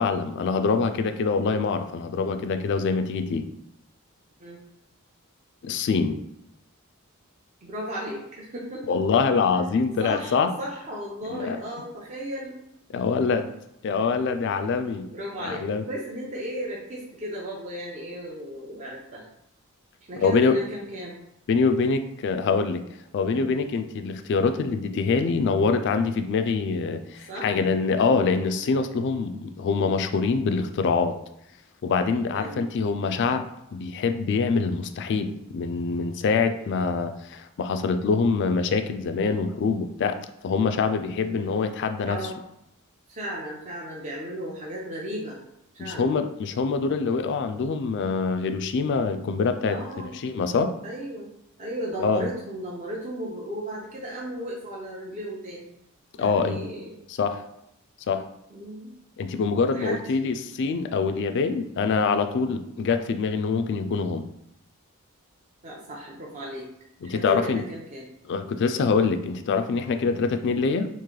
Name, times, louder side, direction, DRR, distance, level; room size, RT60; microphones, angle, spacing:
voice 1, 0.0-3.5 5.6-6.2 8.9-10.5 11.3-11.6 12.9-13.5 13.8-15.1 15.4-15.8 20.2-20.6 21.5-22.8 23.1-31.1 31.8-40.2 40.4-42.3 45.8-49.8 50.1-50.7 52.0-52.3 56.2-56.6 57.1-57.4 58.1-58.3 59.2-64.3 67.0-67.6 68.3-70.9, left 4 dB, 55° left, 8 dB, 0.3 m, -25 dB
voice 2, 7.6-9.0 10.0-12.6 12.9-13.0 15.1-19.2 20.1-21.2 23.2-23.5 27.3-27.6 32.3-32.7 41.2-41.6 42.1-42.4 43.1-45.4 45.7-46.1 49.7-50.1 50.8-51.3 51.6-55.7 56.2-56.9 58.5-58.9 59.7-60.2 65.6-66.7 67.1-68.1 70.0-70.2, equal, 35° right, -4 dB, 0.5 m, -35 dB
3.1 x 2.5 x 3.7 m, 0.80 s
head